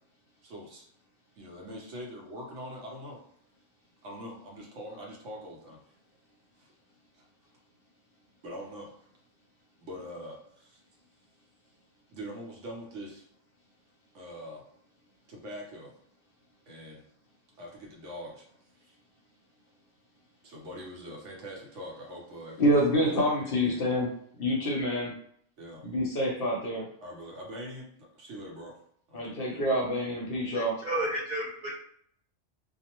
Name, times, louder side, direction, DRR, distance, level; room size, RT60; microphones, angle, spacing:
voice 1, 0.4-0.9 1.4-3.2 4.0-5.9 6.6-6.7 7.1-7.3 8.4-8.9 9.8-10.8 12.1-13.3 14.1-14.6 15.3-15.9 16.7-17.0 17.5-18.4 18.7-18.9 20.4-22.6 22.9-23.9 25.6-25.9 27.0-28.8 29.1-29.7, equal, 70° right, -2 dB, 1.0 m, -43 dB
voice 2, 22.6-24.1 24.3-25.1 25.8-26.8 29.1-30.7, equal, 55° left, -2 dB, 0.7 m, -27 dB
voice 3, 30.5-31.8, right 1 dB, 55° right, -7 dB, 0.5 m, -32 dB
2.5 x 2.0 x 2.8 m, 0.64 s
omnidirectional pair, 1.3 m